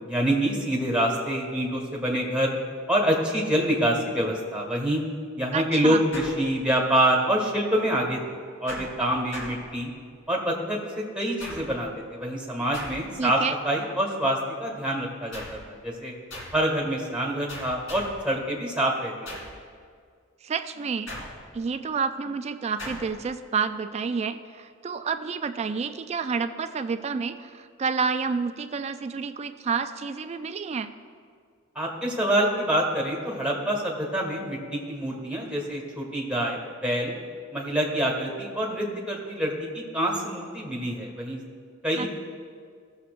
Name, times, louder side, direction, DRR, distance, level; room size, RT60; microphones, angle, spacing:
voice 1, 0.1-2.5 2.9-5.0 5.3-9.9 10.3-16.1 16.5-19.1 19.4-19.5 31.7-37.1 37.5-41.4 41.8-42.1, right 1 dB, 5° right, -2 dB, 1.7 m, -26 dB
voice 2, 5.5-6.0 13.2-13.6 20.4-21.1 21.5-30.9 42.0-42.1, right 5 dB, 30° right, 9 dB, 0.3 m, -29 dB
Laser Gun, 6.1-7.0 8.7-10.2 11.4-12.0 12.7-13.4 15.3-15.7 16.3-16.7 17.5-18.3 19.3-19.7 21.1-21.7 22.8-23.2, left 1 dB, 75° left, 2.6 m, -40 dB
17.0 x 7.2 x 2.5 m, 2.1 s
head